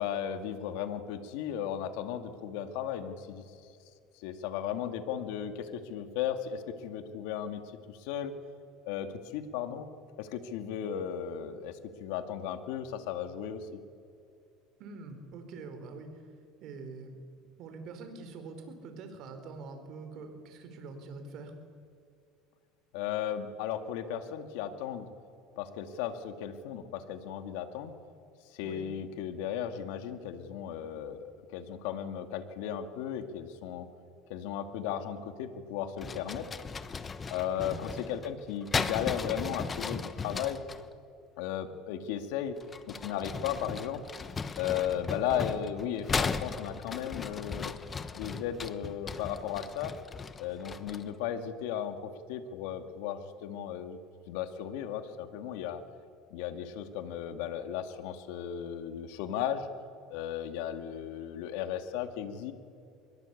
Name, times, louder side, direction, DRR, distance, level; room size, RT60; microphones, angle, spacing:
voice 1, 0.0-3.7 4.2-8.3 8.8-9.9 10.2-13.8 22.9-25.1 25.6-27.9 28.5-33.9 34.3-36.5 37.3-40.6 41.4-42.6 42.9-44.0 44.6-47.7 48.1-49.9 50.4-54.0 54.3-55.8 56.3-59.7 60.1-62.5, left 9 dB, 80° left, 8 dB, 2.3 m, -35 dB
voice 2, 14.8-16.3 16.6-17.1 17.6-21.5 28.6-28.9 37.5-37.8, right 4 dB, 50° right, 7 dB, 4.6 m, -45 dB
sound 1, 36.0-40.8 42.6-51.2, left 5 dB, 20° left, 1.2 m, -37 dB
24.5 x 21.5 x 8.5 m, 2.5 s
cardioid pair, 135°, 0 cm